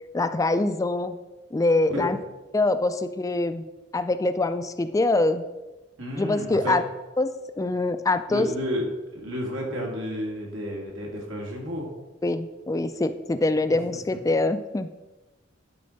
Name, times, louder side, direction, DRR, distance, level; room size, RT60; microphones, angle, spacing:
voice 1, 0.1-1.2 1.5-2.2 2.5-3.6 3.9-5.4 6.2-6.8 7.2-7.3 7.6-8.5 12.2-14.9, left 2 dB, 15° left, 11 dB, 0.3 m, -24 dB
voice 2, 6.0-6.8 8.3-11.9, equal, 85° right, -1 dB, 2.4 m, -31 dB
11.0 x 4.4 x 5.2 m, 1.1 s
head